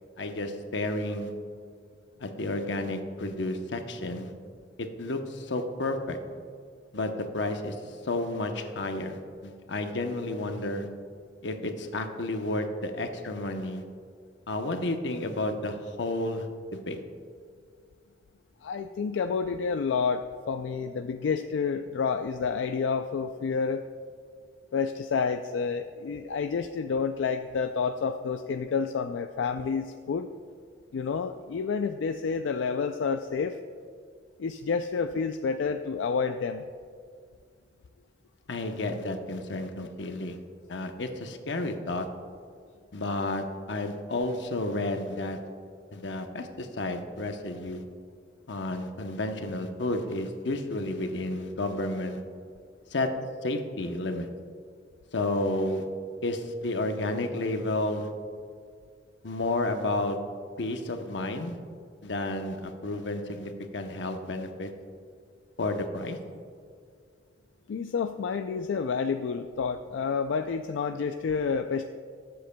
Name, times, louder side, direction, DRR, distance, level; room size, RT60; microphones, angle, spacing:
voice 1, 0.2-1.3 2.2-4.3 4.8-6.2 6.9-7.8 8.0-10.9 11.4-13.8 14.5-17.0 38.5-40.4 40.7-42.1 42.9-45.4 45.9-47.8 48.5-52.2 52.9-53.1 53.4-54.3 55.1-55.8 56.2-58.1 59.2-60.2 60.6-61.6 62.0-64.7 65.6-66.2, left 2 dB, 75° left, 6 dB, 0.8 m, -31 dB
voice 2, 18.6-23.8 24.7-30.3 30.9-33.6 34.4-36.6 67.7-71.9, left 5 dB, 90° left, 8 dB, 0.3 m, -29 dB
19.0 x 7.8 x 2.2 m, 2.1 s
head